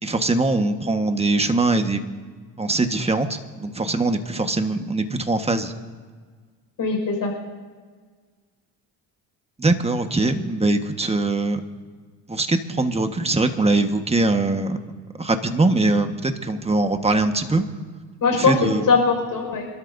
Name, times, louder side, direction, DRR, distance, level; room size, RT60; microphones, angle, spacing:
voice 1, 0.0-2.0 2.6-5.7 9.6-11.6 12.3-14.8 15.2-17.7 18.3-18.9, right 2 dB, 15° right, 6 dB, 1.4 m, -22 dB
voice 2, 6.8-7.3 18.2-19.7, left 4 dB, 50° left, 1 dB, 5.3 m, -20 dB
27.0 x 13.0 x 2.7 m, 1.5 s
supercardioid pair, 80°, 43 cm